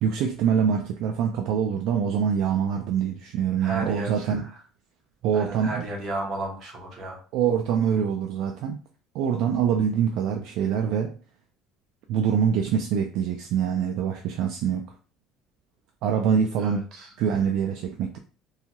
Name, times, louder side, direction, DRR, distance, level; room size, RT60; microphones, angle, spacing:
voice 1, 0.0-4.4 5.2-5.8 7.3-8.8 9.1-11.1 12.1-14.8 16.0-16.8 17.2-18.2, right 7 dB, 65° right, 0.3 m, -24 dB
voice 2, 3.6-4.5 5.3-7.2 16.6-17.1, right 2 dB, 40° right, 0.9 m, -34 dB
2.7 x 2.3 x 2.8 m
cardioid pair, 155°, 0 cm